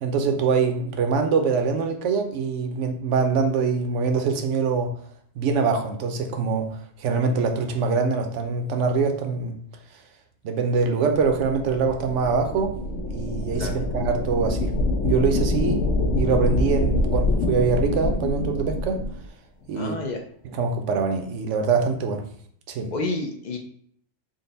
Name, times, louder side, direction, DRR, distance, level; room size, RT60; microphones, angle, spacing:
voice 1, 0.0-5.0 5.4-9.6 10.4-12.8 13.1-14.7 15.0-15.9 16.2-19.0 19.7-20.0 20.5-22.2 22.7-22.9, right 5 dB, 75° right, 5 dB, 0.9 m, -24 dB
sound 1, 11.1-19.2, left 1 dB, 85° left, 1.0 m, -25 dB
voice 2, 19.7-20.2 22.9-23.6, left 2 dB, 55° left, 3 dB, 0.5 m, -29 dB
3.9 x 2.1 x 3.9 m, 0.62 s
omnidirectional pair, 1.3 m